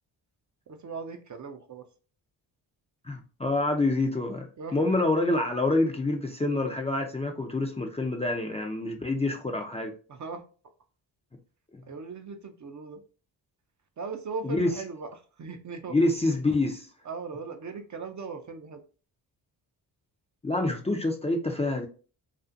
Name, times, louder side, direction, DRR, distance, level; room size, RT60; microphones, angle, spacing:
voice 1, 0.7-1.9 4.6-4.8 10.1-10.4 11.9-13.0 14.0-16.0 17.0-18.8, right 4 dB, 40° right, 0.5 m, -38 dB
voice 2, 3.1-4.5 4.7-9.9 14.4-14.7 15.9-16.9 20.4-21.9, left 2 dB, 15° left, 0.4 m, -27 dB
2.5 x 2.4 x 2.5 m
supercardioid pair, 45°, 46 cm